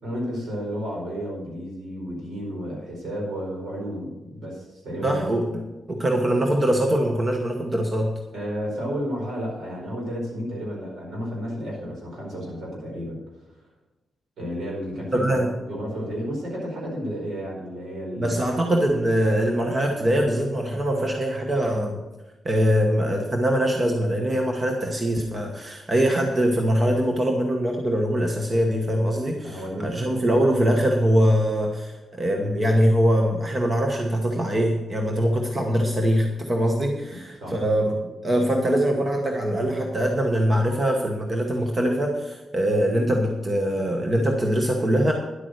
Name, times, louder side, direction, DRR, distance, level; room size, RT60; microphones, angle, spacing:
voice 1, 0.0-5.4 8.3-13.2 14.4-18.4 29.1-29.9 37.1-37.6, equal, 70° right, -2 dB, 4.9 m, -32 dB
voice 2, 5.0-5.5 5.9-8.1 15.1-15.5 18.2-22.0 22.4-45.1, equal, 25° right, 2 dB, 1.1 m, -23 dB
10.5 x 8.5 x 6.5 m, 1.1 s
wide cardioid pair, 170°, 0 cm